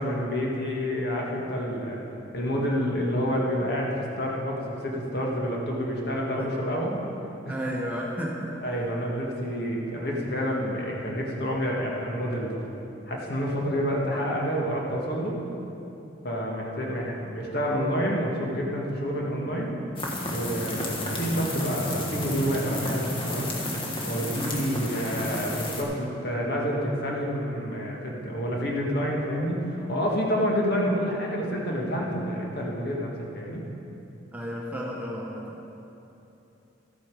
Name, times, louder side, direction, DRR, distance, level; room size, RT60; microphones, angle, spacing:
voice 1, 0.0-2.0 2.3-6.9 7.5-7.6 8.6-12.7 13.1-15.4 16.2-19.8 20.3-23.5 24.1-33.7, equal, 60° left, -2 dB, 1.9 m, -28 dB
voice 2, 7.5-8.6 24.3-24.6 34.3-35.6, equal, 10° right, -3 dB, 1.0 m, -33 dB
sound 1, 20.0-25.8, left 1 dB, 30° left, 1.3 m, -32 dB
13.0 x 8.4 x 4.9 m, 2.9 s
head